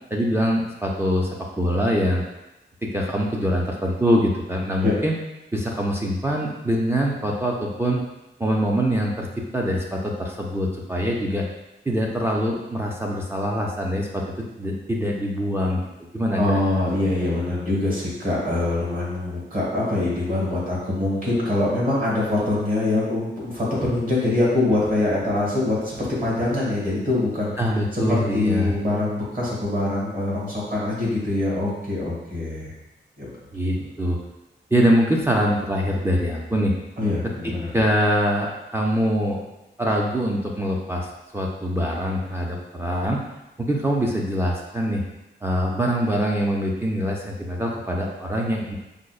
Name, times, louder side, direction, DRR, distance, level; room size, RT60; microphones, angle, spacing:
voice 1, 0.1-1.3 1.6-2.2 2.8-5.2 5.5-8.0 8.4-11.5 11.9-14.3 14.6-15.8 16.1-16.4 27.6-28.8 33.5-34.2 34.7-36.7 37.7-39.4 39.8-43.2 43.6-45.0 45.4-48.8, equal, 10° right, -2 dB, 0.3 m, -23 dB
voice 2, 16.4-27.5 27.9-32.7 33.2-33.3 33.8-33.9 37.0-37.8, left 2 dB, 45° right, -6 dB, 1.4 m, -24 dB
4.9 x 2.0 x 2.3 m, 0.95 s
wide cardioid pair, 140°, 20 cm